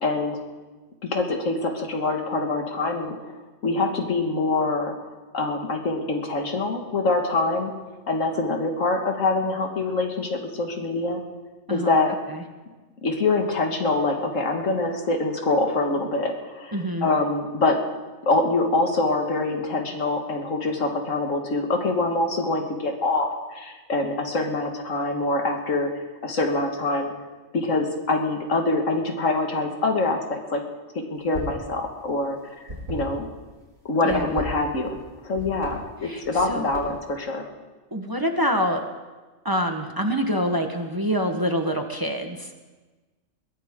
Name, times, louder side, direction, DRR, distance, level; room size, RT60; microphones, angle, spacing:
voice 1, 0.0-0.4 1.0-3.3 3.6-4.9 5.3-7.7 8.1-11.2 11.7-12.1 13.0-17.8 18.2-27.1 27.5-30.6 31.1-33.2 33.9-35.0 35.2-37.5, left 2 dB, 90° left, 3 dB, 2.2 m, -25 dB
voice 2, 16.7-17.1 34.0-34.4 36.0-36.7 37.9-38.8 39.4-42.5, equal, 20° right, 4 dB, 1.1 m, -26 dB
sound 1, 31.2-31.6 31.9-33.5 34.0-35.1 35.3-35.7 36.2-37.1, equal, 80° right, 4.6 m, -35 dB
22.0 x 15.5 x 3.7 m, 1.3 s
omnidirectional pair, 1.3 m